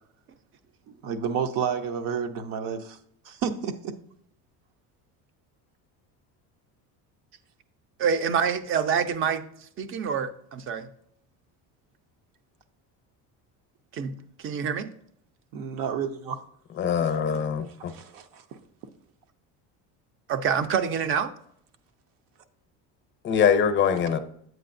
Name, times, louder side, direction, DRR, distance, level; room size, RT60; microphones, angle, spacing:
voice 1, 0.9-3.0 3.3-4.0 15.5-16.4 17.3-17.4 17.8-18.6, right 7 dB, 65° right, 0.9 m, -31 dB
voice 2, 8.0-9.4 9.8-10.9 13.9-14.9 20.3-21.3, right 7 dB, 35° right, 0.6 m, -26 dB
voice 3, 16.8-17.9 23.2-24.2, left 7 dB, 30° left, 0.6 m, -23 dB
9.2 x 7.9 x 2.6 m
cardioid pair, 145°, 36 cm